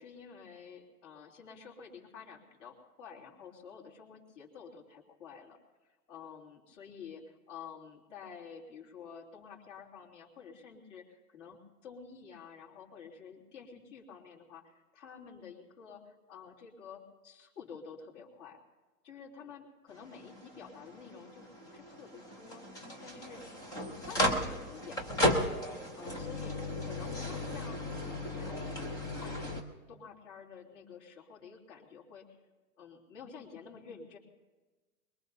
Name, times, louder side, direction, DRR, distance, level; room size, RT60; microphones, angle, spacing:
voice 1, 0.0-5.6 5.8-18.6 19.0-25.4 25.8-29.6 29.9-32.4 32.8-34.2, left 6 dB, 45° left, -1 dB, 3.4 m, -50 dB
sound 1, 19.9-29.6, left 1 dB, 10° left, 0.5 m, -35 dB
23.0 x 22.0 x 2.7 m, 1.2 s
hypercardioid pair, 145°, 48 cm